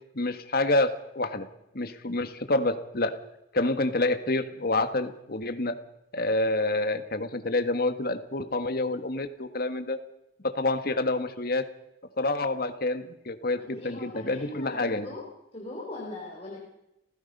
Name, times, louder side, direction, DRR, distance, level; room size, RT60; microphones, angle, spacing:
voice 1, 0.1-1.5 1.7-3.1 3.5-5.8 6.1-10.0 10.4-11.6 12.2-15.1, left 2 dB, 55° left, 9 dB, 1.6 m, -28 dB
voice 2, 13.6-15.2 15.5-16.6, left 2 dB, 35° left, -2 dB, 4.0 m, -40 dB
29.5 x 16.0 x 5.5 m, 0.88 s
head